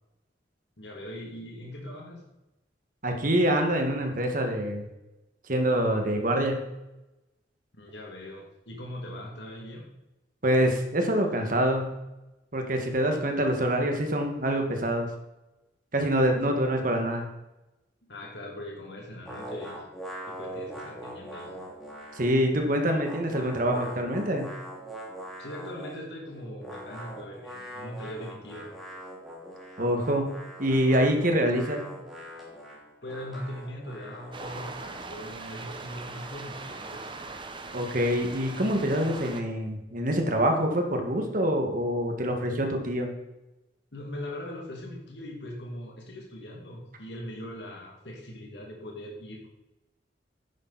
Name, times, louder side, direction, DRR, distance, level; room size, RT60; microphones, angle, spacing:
voice 1, 0.8-2.2 7.7-9.9 16.4-16.5 18.0-19.9 20.2-21.5 25.4-28.7 33.0-37.1 43.9-49.5, left 1 dB, 75° left, -1 dB, 2.4 m, -40 dB
voice 2, 3.0-4.9 5.5-6.7 10.4-11.9 12.5-15.1 15.9-17.3 22.2-24.5 29.8-30.3 30.6-31.8 37.7-43.1, equal, 50° right, 3 dB, 1.9 m, -25 dB
sound 1, 19.3-22.5 22.8-26.1 26.6-34.6, equal, ahead, 3.1 m, -42 dB
sound 2, 34.3-39.4, right 3 dB, 30° right, 1.0 m, -40 dB
10.5 x 9.0 x 4.2 m, 0.97 s
head